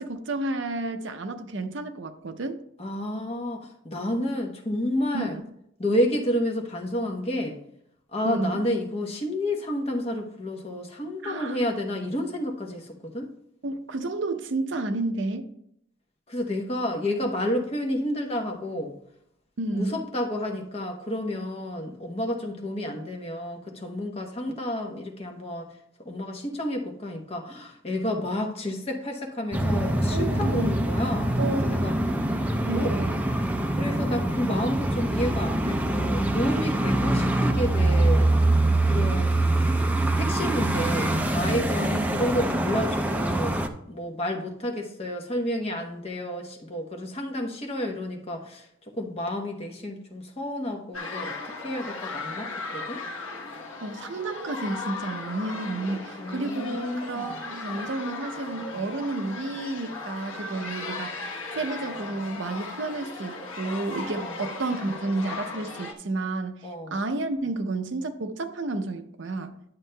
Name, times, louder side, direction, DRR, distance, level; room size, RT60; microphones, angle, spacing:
voice 1, 0.0-2.6 5.1-5.4 8.2-8.6 11.2-11.6 13.6-15.5 19.6-20.0 30.1-30.8 31.4-31.9 32.7-33.2 41.8-42.3 53.8-69.6, right 2 dB, 60° right, 8 dB, 0.6 m, -31 dB
voice 2, 2.8-5.4 5.8-7.6 8.1-13.3 16.3-18.9 19.7-25.7 26.0-32.0 32.7-32.9 33.7-38.3 38.9-39.7 40.2-43.6 43.9-48.7 49.0-53.0 56.2-57.3 64.2-64.4 66.6-67.0, left 1 dB, 30° left, 2 dB, 0.9 m, -30 dB
sound 1, 29.5-43.7, right 1 dB, 10° right, 0.4 m, -24 dB
sound 2, 50.9-65.9, left 3 dB, 75° left, 1.1 m, -37 dB
11.0 x 7.2 x 2.2 m, 0.73 s
head